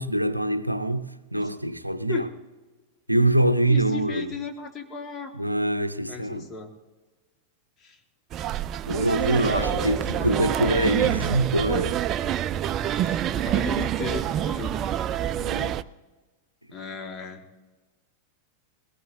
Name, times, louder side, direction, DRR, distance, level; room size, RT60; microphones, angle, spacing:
voice 1, 0.0-2.3 3.1-4.3 5.3-6.5 8.9-12.0 15.4-15.8, right 1 dB, 85° right, 0.5 m, -24 dB
voice 2, 3.7-5.3 6.1-6.7 7.8-8.0 9.3-10.4 12.8-15.1 16.7-17.4, left 5 dB, 25° left, 1.6 m, -36 dB
sound 1, 8.3-15.8, right 11 dB, 30° right, 0.3 m, -27 dB
20.5 x 17.5 x 2.6 m
figure-of-eight pair, 90°, 0 cm